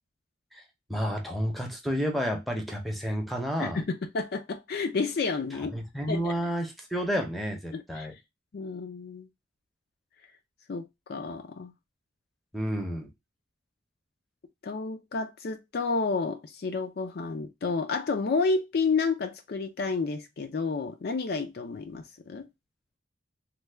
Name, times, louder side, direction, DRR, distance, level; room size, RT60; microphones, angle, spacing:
voice 1, 0.9-3.8 5.7-8.1 12.5-13.1, equal, ahead, 0.6 m, -30 dB
voice 2, 3.6-5.8 6.1-6.4 7.7-8.1 8.5-9.3 10.7-11.7 14.6-22.5, left 4 dB, 50° left, 0.4 m, -30 dB
3.2 x 2.2 x 3.3 m
head